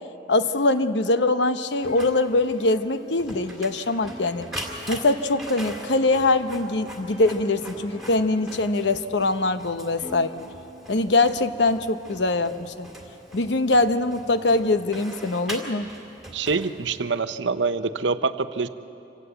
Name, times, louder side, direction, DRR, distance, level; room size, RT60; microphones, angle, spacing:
voice 1, 0.3-4.5 4.9-10.3 10.9-12.9 13.3-15.9, left 2 dB, 65° left, 10 dB, 0.9 m, -23 dB
Plucked string instrument, 1.8-6.7 7.1-8.8 9.2-9.3 10.0-11.1, equal, 30° left, 6.4 m, -45 dB
Printer, 1.8-17.2, equal, ahead, 2.5 m, -41 dB
voice 2, 16.3-18.7, right 4 dB, 70° right, 11 dB, 0.8 m, -25 dB
26.5 x 16.5 x 8.1 m, 2.9 s
head